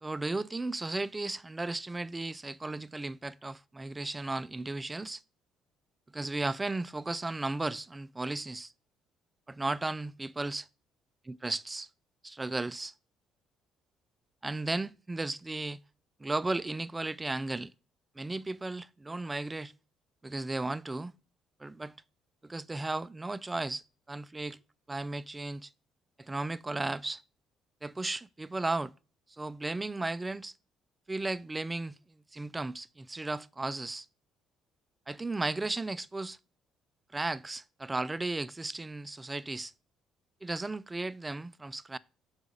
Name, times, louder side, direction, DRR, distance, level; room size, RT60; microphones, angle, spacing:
voice 1, 0.0-5.2 6.1-8.7 9.5-10.7 11.2-11.9 12.2-12.9 14.4-15.8 16.2-17.7 18.2-19.7 20.2-21.1 21.6-22.0 22.4-24.6 24.9-25.7 26.2-27.2 27.8-28.9 29.3-30.5 31.1-32.0 32.3-34.1 35.1-36.4 37.1-39.7 40.4-42.0, right 2 dB, 15° right, 0.3 m, -35 dB
6.8 x 4.8 x 5.0 m
cardioid pair, 130°, 0 cm